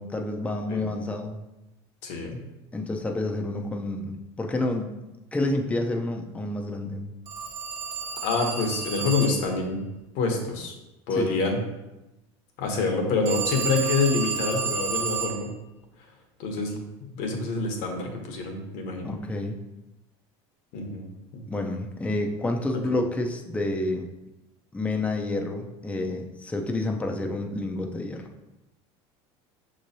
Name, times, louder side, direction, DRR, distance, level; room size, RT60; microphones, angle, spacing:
voice 1, 0.0-1.4 2.7-4.9 5.3-7.1 11.1-11.4 19.0-19.5 21.5-24.1 24.7-28.3, left 2 dB, 10° left, 2 dB, 0.5 m, -29 dB
voice 2, 2.0-2.4 8.2-9.8 10.1-10.7 11.1-11.6 12.6-15.5 16.4-16.8 17.1-19.1 20.7-21.1 21.3-21.4 22.7-23.0, left 3 dB, 70° left, 2 dB, 1.0 m, -27 dB
Telephone, 7.3-9.6 13.3-15.5, right 6 dB, 25° right, 1.2 m, -31 dB
6.2 x 3.1 x 2.7 m, 0.99 s
supercardioid pair, 110°, 14 cm